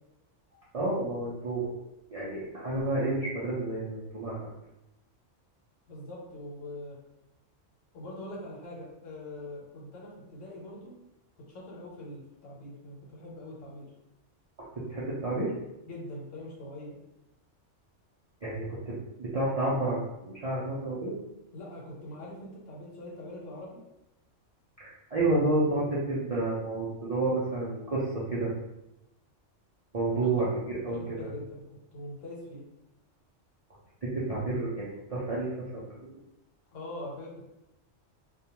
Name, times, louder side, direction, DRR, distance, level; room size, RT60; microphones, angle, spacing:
voice 1, 0.7-1.7 2.1-4.5 14.9-15.5 18.4-21.2 24.8-28.5 29.9-31.3 34.0-36.2, right 2 dB, 55° right, -8 dB, 0.4 m, -30 dB
voice 2, 5.9-7.0 7.9-10.9 11.5-13.9 15.9-17.0 21.5-23.7 30.2-30.5 30.9-31.6 31.9-32.7 36.7-37.5, left 1 dB, 80° left, -3 dB, 1.1 m, -43 dB
2.3 x 2.2 x 2.8 m, 0.89 s
omnidirectional pair, 1.3 m